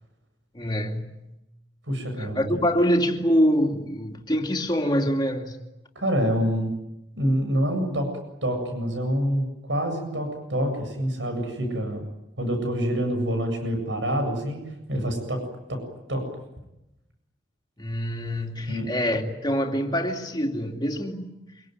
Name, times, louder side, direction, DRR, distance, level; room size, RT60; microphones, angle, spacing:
voice 1, 0.5-1.3 2.2-5.6 17.8-21.4, equal, 25° left, 2.8 m, -25 dB
voice 2, 1.9-2.4 5.9-6.7 7.1-8.1 8.4-12.0 12.4-15.4 15.7-15.8 16.1-16.2 18.7-18.9, equal, 85° right, 7.9 m, -26 dB
26.5 x 23.0 x 9.4 m
head